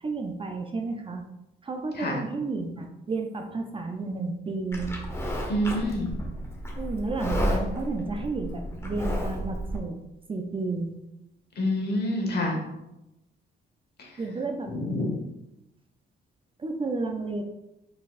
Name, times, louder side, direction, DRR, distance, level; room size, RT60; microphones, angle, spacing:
voice 1, 0.0-1.3 1.6-4.9 6.8-10.0 10.3-10.9 14.2-14.7 16.6-17.4, right 3 dB, 25° right, 3 dB, 0.5 m, -32 dB
Livestock farm animals working animals, 4.7-9.8, equal, 15° left, 1.0 m, -31 dB
voice 2, 5.5-6.2 11.6-12.6 14.0-14.2 14.7-15.1, left 1 dB, 55° left, 0 dB, 1.3 m, -27 dB
4.1 x 3.9 x 2.5 m, 0.91 s
cardioid pair, 90°, 20 cm